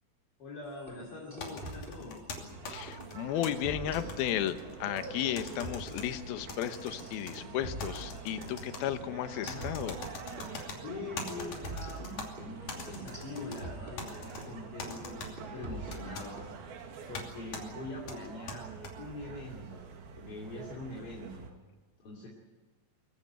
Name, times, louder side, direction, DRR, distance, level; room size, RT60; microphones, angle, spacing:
voice 1, 0.4-2.2 9.4-9.7 10.8-16.4 17.1-18.7 19.0-19.9 20.1-21.5 22.0-22.3, left 2 dB, 40° left, -2 dB, 3.5 m, -43 dB
sound 1, 0.8-2.6 2.9-3.1 3.4-4.6 4.9-8.6 8.9-9.0 9.4-10.5 10.9-11.1 11.4-14.6 14.9-15.1 15.4-16.5, right 1 dB, 15° right, 3.0 m, -45 dB
sound 2, 1.4-3.5 3.9-5.1 5.4-6.1 6.5-7.4 7.8-8.8 9.5-10.8 11.2-12.3 12.7-13.6 14.0-14.4 14.8-15.3 15.9-16.3 17.1-17.3 17.5-17.6 18.1-18.9, left 3 dB, 60° left, 4.1 m, -42 dB
sound 3, 2.5-21.5, right 5 dB, 85° right, 3.9 m, -46 dB
voice 2, 2.7-10.0 10.5-10.6, left 11 dB, 85° left, 10 dB, 2.9 m, -34 dB
23.5 x 15.5 x 9.5 m, 1.3 s
omnidirectional pair, 4.2 m